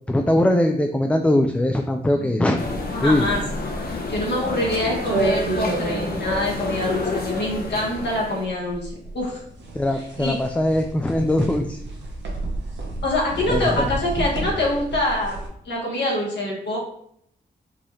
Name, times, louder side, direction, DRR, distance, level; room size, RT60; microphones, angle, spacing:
voice 1, 0.1-2.6 3.0-3.3 9.7-11.8 13.5-13.6, left 1 dB, 5° left, 4 dB, 0.3 m, -21 dB
voice 2, 2.2-3.4 3.8-9.4 9.9-10.4 13.0-16.8, left 1 dB, 80° left, -3 dB, 1.3 m, -25 dB
sound 1, 2.6-8.5, left 3 dB, 60° left, 0.8 m, -29 dB
sound 2, 2.8-15.5, right 2 dB, 85° right, 0.9 m, -30 dB
4.6 x 2.7 x 3.1 m, 0.71 s
cardioid pair, 60°, 18 cm